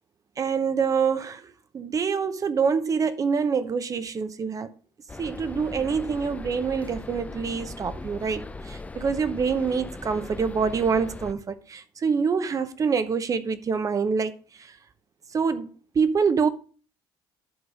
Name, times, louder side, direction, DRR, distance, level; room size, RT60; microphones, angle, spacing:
voice 1, 0.4-4.7 5.2-14.8 15.3-16.5, right 5 dB, 35° right, 0.8 m, -26 dB
sound 1, 5.1-11.3, left 2 dB, 15° left, 0.5 m, -39 dB
11.0 x 3.9 x 5.0 m
supercardioid pair, 85°, 10 cm